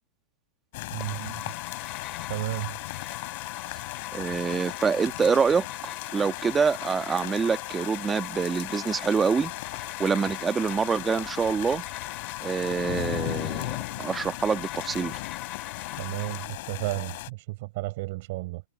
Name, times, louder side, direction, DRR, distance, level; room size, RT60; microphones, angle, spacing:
sound 1, 0.7-17.3, left 21 dB, 55° left, 5.2 m, -37 dB
voice 1, 0.9-1.5 2.3-2.8 16.0-18.6, right 21 dB, 55° right, 4.4 m, -33 dB
sound 2, 1.0-16.5, left 12 dB, 30° left, 4.4 m, -41 dB
voice 2, 4.1-11.8 12.4-15.2, right 5 dB, 15° right, 1.5 m, -26 dB
hypercardioid pair, 115°, 0 cm